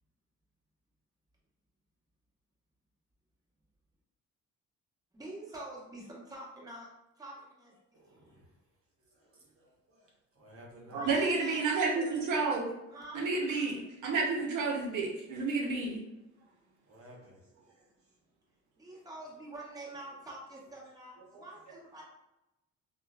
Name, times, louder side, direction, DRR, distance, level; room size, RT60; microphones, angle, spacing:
voice 1, 5.1-6.9 7.2-7.8 8.1-8.3 10.8-12.2 12.9-13.3 18.8-22.0, right 1 dB, 10° right, -6 dB, 1.0 m, -46 dB
voice 2, 7.9-8.5 9.2-10.1 10.4-11.0 16.9-17.4 17.7-17.8, equal, 50° right, -1 dB, 0.9 m, -55 dB
voice 3, 10.9-12.7 13.1-16.0, right 3 dB, 80° right, -2 dB, 0.7 m, -30 dB
3.1 x 2.2 x 2.3 m, 0.94 s
cardioid pair, 90°, 30 cm